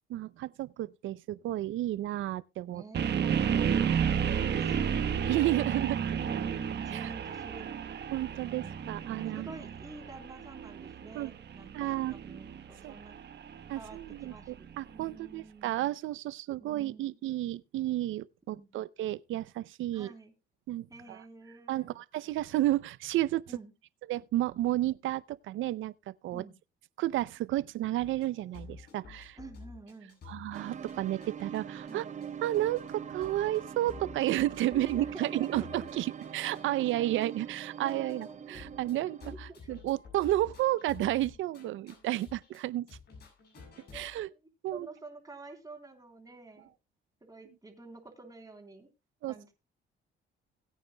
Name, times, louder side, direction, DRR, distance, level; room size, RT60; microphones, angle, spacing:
voice 1, 0.1-2.8 3.6-3.8 5.2-6.0 6.9-7.1 8.1-9.5 11.1-11.3 11.7-12.2 12.8-13.0 13.7-20.1 20.7-21.2 21.7-23.4 24.1-25.9 26.2-26.4 27.0-29.4 30.3-32.0 32.4-42.9 43.9-44.3 44.6-44.9 49.2-49.5, right 14 dB, 80° right, 0.5 m, -32 dB
voice 2, 2.7-3.1 3.6-4.9 6.1-7.7 8.5-13.2 13.8-15.8 16.6-17.2 18.5-18.7 19.9-20.3 20.9-22.0 23.5-23.7 26.3-26.5 29.4-30.2 31.8-32.1 34.7-35.9 37.0-37.1 37.8-38.7 39.5-39.8 43.9-44.2 44.7-46.7 47.2-48.9 49.3-49.5, right 3 dB, 20° right, 3.4 m, -49 dB
sound 1, 2.9-14.9, right 7 dB, 60° right, 1.2 m, -32 dB
sound 2, 28.0-31.6 31.9-32.0 32.2-37.6 37.9-38.3 38.5-42.6 42.9-44.2, left 5 dB, 55° left, 7.1 m, -51 dB
sound 3, 30.5-39.4, right 7 dB, 35° right, 0.6 m, -43 dB
20.0 x 9.3 x 2.2 m
cardioid pair, 90°, 20 cm